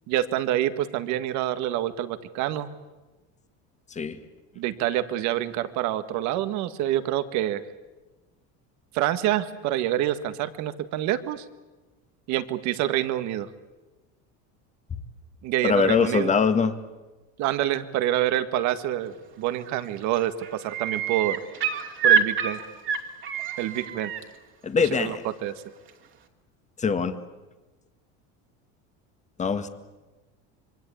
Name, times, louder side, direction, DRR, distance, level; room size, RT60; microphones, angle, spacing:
voice 1, 0.1-2.7 4.6-7.6 8.9-11.4 12.3-13.5 15.4-16.3 17.4-21.4 22.0-22.7 23.6-24.1 24.8-25.5, right 13 dB, 65° right, 11 dB, 1.8 m, -27 dB
voice 2, 15.6-16.8 24.6-25.2 26.8-27.1 29.4-29.7, left 5 dB, 20° left, 9 dB, 1.8 m, -22 dB
sound 1, 19.5-19.9 20.2-24.2 25.9-26.0, right 7 dB, 40° right, 2.7 m, -26 dB
26.5 x 23.5 x 8.6 m, 1.2 s
cardioid pair, 135°, 31 cm